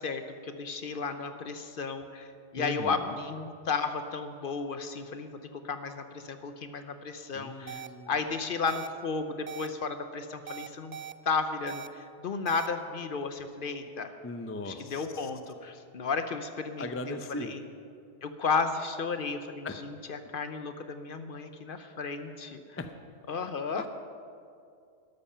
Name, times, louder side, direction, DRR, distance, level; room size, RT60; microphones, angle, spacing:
voice 1, 0.0-11.0 11.3-14.1 14.7-17.6 18.2-22.8 23.3-23.8, left 4 dB, 55° left, 9 dB, 0.8 m, -34 dB
voice 2, 2.5-3.2 7.3-8.1 14.2-15.3 16.8-17.6 19.6-19.7 22.8-22.9, left 2 dB, 20° left, 7 dB, 0.4 m, -38 dB
sound 1, 7.7-7.9 8.7-8.9 9.5-9.7 10.5-11.1 11.7-11.9 12.5-12.7, right 9 dB, 60° right, 0.4 m, -40 dB
12.5 x 12.0 x 5.6 m, 2.4 s
omnidirectional pair, 1.2 m